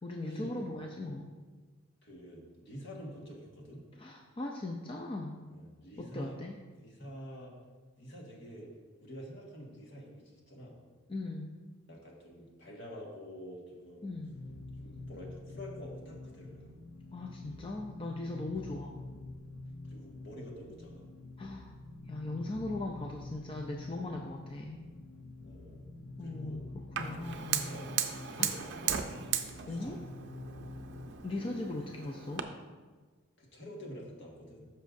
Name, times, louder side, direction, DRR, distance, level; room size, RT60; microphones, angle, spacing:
voice 1, 0.0-1.3 4.0-5.4 6.0-6.5 11.1-11.5 14.0-14.3 17.1-19.0 21.4-21.7 22.1-24.8 26.2-27.7 28.4-28.5 29.7-30.0 31.2-32.5, left 2 dB, 25° left, 1 dB, 0.4 m, -39 dB
voice 2, 2.0-3.8 5.5-6.4 6.8-7.6 8.0-8.7 9.0-10.8 11.9-14.2 14.8-16.7 18.5-18.6 19.8-21.1 25.4-25.9 26.2-26.6 27.5-29.3 29.7-30.1 31.3-31.7 33.4-34.7, equal, 55° left, -2 dB, 1.7 m, -48 dB
sound 1, 14.2-31.2, left 2 dB, 75° left, 0.6 m, -47 dB
Fire, 27.0-32.4, right 9 dB, 55° right, 0.5 m, -37 dB
13.0 x 5.7 x 2.6 m, 1.4 s
head